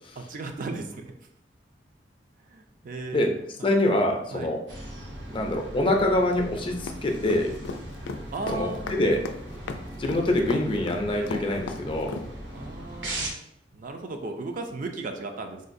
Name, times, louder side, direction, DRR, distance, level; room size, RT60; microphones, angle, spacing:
voice 1, 0.2-1.1 2.5-3.3 3.6-3.7 4.3-4.5 8.3-9.0 12.5-13.4 13.7-15.6, right 3 dB, 50° right, 5 dB, 0.4 m, -36 dB
voice 2, 3.6-4.6 5.3-7.5 8.5-9.2 10.0-12.1, left 1 dB, 30° left, 2 dB, 0.5 m, -25 dB
sound 1, 4.7-13.3, right 1 dB, 75° right, 0.7 m, -39 dB
sound 2, 6.9-12.3, left 4 dB, 90° left, 0.3 m, -35 dB
3.7 x 2.4 x 2.6 m, 0.75 s
head